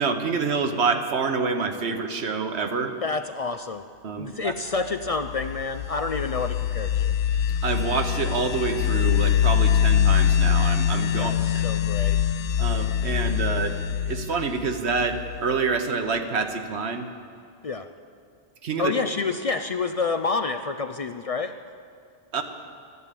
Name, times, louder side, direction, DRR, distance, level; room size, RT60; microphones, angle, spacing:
voice 1, 0.0-3.0 4.0-4.5 7.6-11.7 12.6-13.8 14.1-17.1 18.6-18.9 22.3-22.4, right 4 dB, 70° right, 7 dB, 1.3 m, -27 dB
voice 2, 3.0-3.8 4.2-7.1 11.1-12.2 17.6-17.9 18.8-21.5, left 4 dB, 60° left, 8 dB, 0.3 m, -28 dB
sound 1, 5.0-15.6, left 9 dB, 85° left, 0.9 m, -24 dB
14.0 x 11.0 x 8.3 m, 2.3 s
omnidirectional pair, 1.2 m